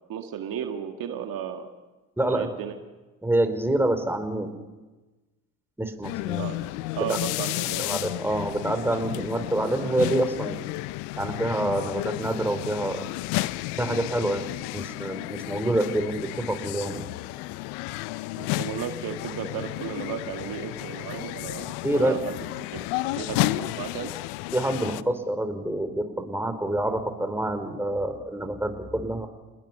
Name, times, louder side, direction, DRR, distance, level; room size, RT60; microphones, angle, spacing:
voice 1, 0.1-1.7 2.3-2.7 6.4-7.9 18.4-22.8 23.2-24.1, right 8 dB, 55° right, 5 dB, 2.0 m, -34 dB
voice 2, 2.2-2.5 3.2-4.5 5.8-6.5 7.1-7.2 7.8-10.6 11.2-13.1 13.8-14.5 14.7-17.1 21.8-22.1 24.5-29.3, right 1 dB, 5° right, 7 dB, 3.5 m, -27 dB
sound 1, 6.0-25.0, left 20 dB, 75° left, 0.7 m, -32 dB
29.0 x 20.5 x 5.6 m, 1.2 s
hypercardioid pair, 65°, 41 cm